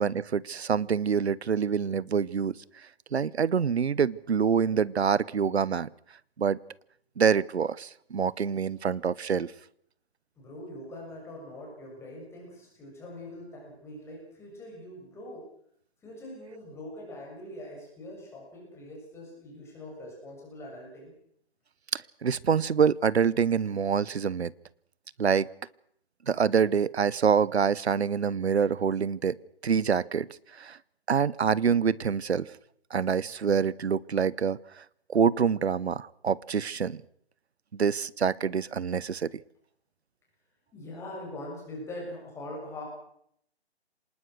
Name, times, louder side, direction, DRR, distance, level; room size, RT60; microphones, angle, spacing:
voice 1, 0.0-2.6 3.1-5.9 6.4-6.6 7.2-9.5 21.9-24.5 25.2-25.5 26.3-29.4 29.6-30.3 30.6-30.8 31.1-32.5 32.9-34.6 35.1-37.0 37.7-39.3, right 6 dB, 75° right, 22 dB, 0.9 m, -26 dB
voice 2, 10.4-15.5 16.0-21.1 40.7-42.8, left 1 dB, 10° left, -2 dB, 7.1 m, -43 dB
26.0 x 20.0 x 6.3 m, 0.69 s
hypercardioid pair, 150°, 33 cm